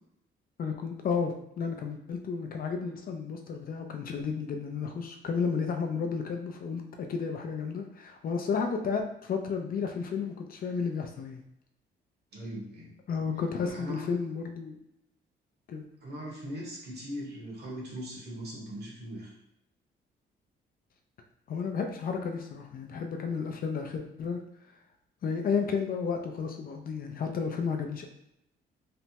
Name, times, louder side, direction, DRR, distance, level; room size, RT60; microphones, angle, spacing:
voice 1, 0.6-11.4 13.1-14.8 15.7-15.9 21.5-24.4 25.2-28.1, left 5 dB, 50° left, 4 dB, 0.4 m, -32 dB
voice 2, 12.3-12.9 13.6-14.0 16.0-19.3, equal, 55° right, -3 dB, 1.2 m, -40 dB
3.2 x 2.0 x 2.8 m, 0.81 s
cardioid pair, 90°, 20 cm